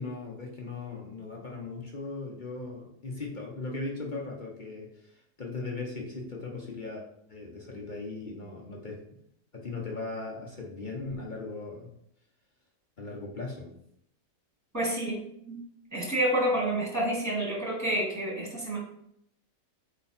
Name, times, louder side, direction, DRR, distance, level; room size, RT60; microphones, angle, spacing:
voice 1, 0.0-5.1 5.4-7.0 7.3-9.0 9.5-11.9 13.0-13.7, left 3 dB, 35° left, -1 dB, 0.9 m, -38 dB
voice 2, 14.7-15.6 15.9-18.8, right 1 dB, 10° right, -3 dB, 2.0 m, -29 dB
8.2 x 3.1 x 4.3 m, 0.73 s
omnidirectional pair, 1.9 m